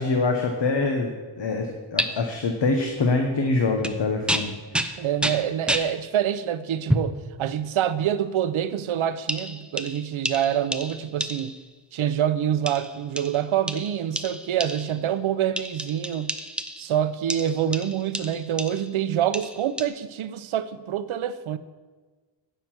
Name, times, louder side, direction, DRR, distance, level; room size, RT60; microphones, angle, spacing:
voice 1, 0.0-4.5, left 3 dB, 60° left, 1.1 m, -24 dB
sound 1, 2.0-2.1 3.8-4.0 4.3-5.9 6.9-7.2 8.0-8.1 9.3-11.7 12.7-15.0 15.6-17.0 17.3-18.9 19.3-19.8, right 1 dB, ahead, 0.5 m, -30 dB
voice 2, 5.0-11.5 11.9-16.3 16.8-21.6, right 10 dB, 90° right, 0.6 m, -26 dB
9.3 x 6.6 x 5.9 m
wide cardioid pair, 100°, 47 cm